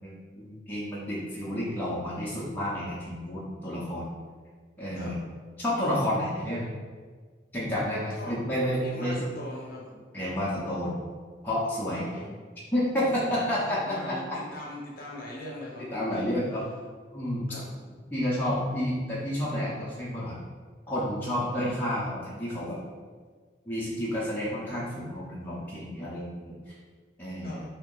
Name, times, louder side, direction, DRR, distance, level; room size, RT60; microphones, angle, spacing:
voice 1, 0.0-4.1 4.8-5.2 5.6-6.7 7.5-9.3 10.1-11.0 11.4-12.1 12.7-14.4 15.8-16.6 17.1-17.5 18.1-20.4 20.9-22.8 23.7-26.7 27.2-27.6, equal, 10° left, -8 dB, 0.6 m, -30 dB
voice 2, 8.8-10.0 11.9-12.4 13.0-16.3 17.5-17.7 21.3-21.8 27.4-27.6, left 1 dB, 50° left, -4 dB, 0.8 m, -41 dB
2.9 x 2.8 x 3.7 m, 1.5 s
head